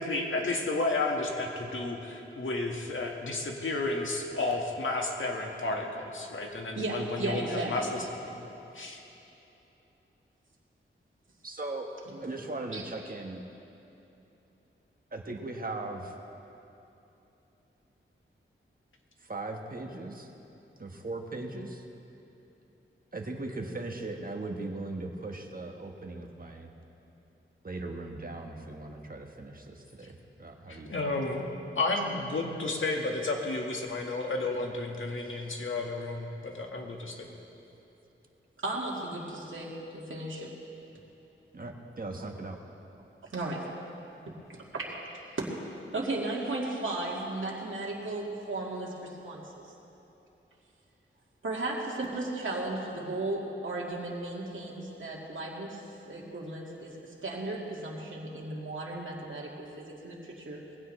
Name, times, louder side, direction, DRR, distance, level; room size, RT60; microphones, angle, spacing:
voice 1, 0.0-8.4 8.7-9.0 30.7-37.3, left 2 dB, 70° left, 1 dB, 1.8 m, -32 dB
voice 2, 6.8-8.0 12.0-12.4 12.7-12.9 31.9-32.1 38.6-40.5 42.2-42.3 43.3-43.6 44.5-44.9 45.4-45.5 45.9-49.7 51.4-55.8 56.1-56.9 57.2-60.6, right 2 dB, 70° right, -4 dB, 2.1 m, -35 dB
voice 3, 11.4-13.4 15.1-16.2 19.2-20.3 20.8-21.8 23.1-26.7 27.6-30.1 30.4-31.1 35.2-35.5 41.5-42.6, right 2 dB, 45° right, 2 dB, 1.5 m, -39 dB
21.0 x 16.0 x 3.3 m, 3.0 s
wide cardioid pair, 75°, 21 cm